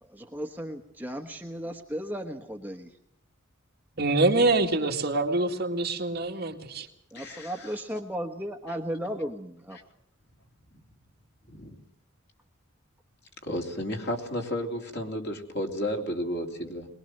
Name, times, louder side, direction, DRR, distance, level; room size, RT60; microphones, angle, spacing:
voice 1, 0.0-2.9 7.1-9.8, equal, 10° right, 4 dB, 1.2 m, -35 dB
voice 2, 4.0-6.9, right 2 dB, 50° right, 2 dB, 2.2 m, -25 dB
voice 3, 7.1-7.7 11.5-11.8 13.4-16.9, equal, 55° left, 2 dB, 3.4 m, -32 dB
22.5 x 21.0 x 7.8 m, 0.70 s
head